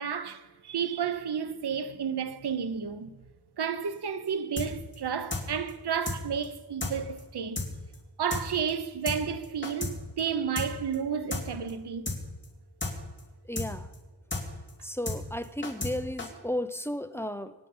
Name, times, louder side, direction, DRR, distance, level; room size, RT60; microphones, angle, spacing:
voice 1, 0.0-3.3 3.6-7.6 8.2-12.1, right 7 dB, 85° right, 1.1 m, -32 dB
sound 1, 4.6-4.7 4.9-5.0 5.3-5.4 5.7-5.8 6.1-6.2 6.4-6.5 6.8-6.9 7.2-7.3 7.6-7.7 7.9-8.0 8.3-8.4 8.7-8.8 9.1-9.2 9.4-9.9 10.2-10.3 10.6-10.7 10.9-11.0 11.3-11.4 11.7-11.8 12.1-12.2 12.4-12.5 12.8-12.9 13.2-13.3 13.6-13.7 13.9-14.0 14.3-14.4 14.7-14.8 15.1-15.2 15.4-15.9 16.2-16.3, left 3 dB, 30° left, 3.2 m, -32 dB
voice 2, 13.5-13.9 14.8-17.5, left 1 dB, 5° left, 0.7 m, -34 dB
24.0 x 10.0 x 5.6 m
wide cardioid pair, 110°, 38 cm